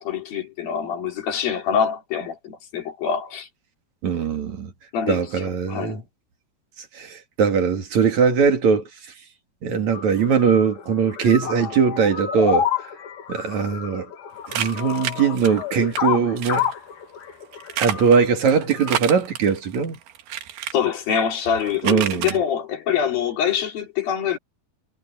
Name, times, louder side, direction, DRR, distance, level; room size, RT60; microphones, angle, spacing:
voice 1, 0.0-3.5 4.9-6.0 20.7-24.4, left 8 dB, 75° left, 4.8 m, -25 dB
voice 2, 4.0-4.7 5.1-6.0 7.0-8.9 9.6-12.7 13.3-14.1 14.5-16.7 17.8-20.0 21.8-22.3, right 6 dB, 55° right, 3.4 m, -20 dB
sound 1, 9.9-19.0, left 8 dB, 60° left, 3.5 m, -29 dB
sound 2, 14.5-16.0 16.4-16.7 17.5-20.7 21.5-22.4, right 11 dB, 90° right, 3.4 m, -29 dB
omnidirectional pair, 4.2 m